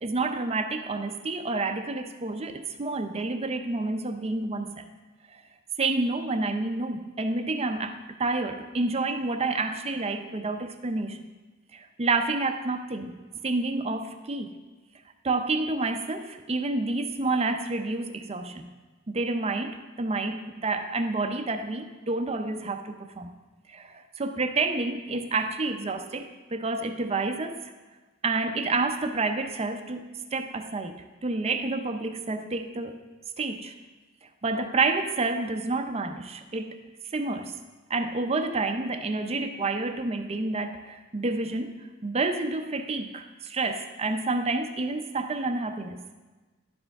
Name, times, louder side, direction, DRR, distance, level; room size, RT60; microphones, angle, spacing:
voice 1, 0.0-4.9 5.3-5.4 5.8-11.2 11.7-13.2 13.4-14.6 15.2-18.7 19.1-23.3 23.7-27.6 28.2-33.0 33.4-33.8 34.4-36.8 37.1-37.6 37.9-46.0, right 3 dB, 30° right, 8 dB, 0.6 m, -29 dB
11.0 x 7.5 x 3.5 m, 1.3 s
head